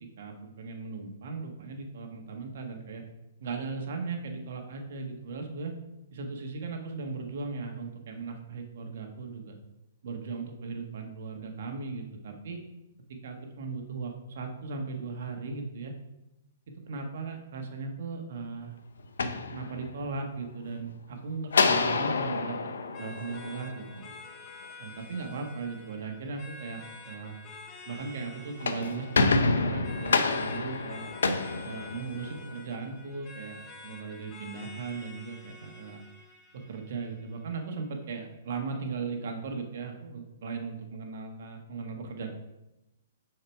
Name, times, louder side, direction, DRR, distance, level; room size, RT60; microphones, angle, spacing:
voice 1, 0.2-3.0 3.4-5.8 6.1-9.6 10.0-12.6 13.2-16.0 16.9-18.8 19.5-22.6 23.0-24.1 24.8-27.4 27.9-31.0 31.6-36.0 36.7-42.3, right 4 dB, 60° right, 3 dB, 1.6 m, -37 dB
sound 1, 19.0-20.2 21.5-24.0 28.4-32.5, left 4 dB, 80° left, 0.7 m, -28 dB
sound 2, 22.9-37.9, left 3 dB, 25° left, 1.1 m, -49 dB
6.8 x 4.8 x 4.7 m, 0.96 s
hypercardioid pair, 135°, 0 cm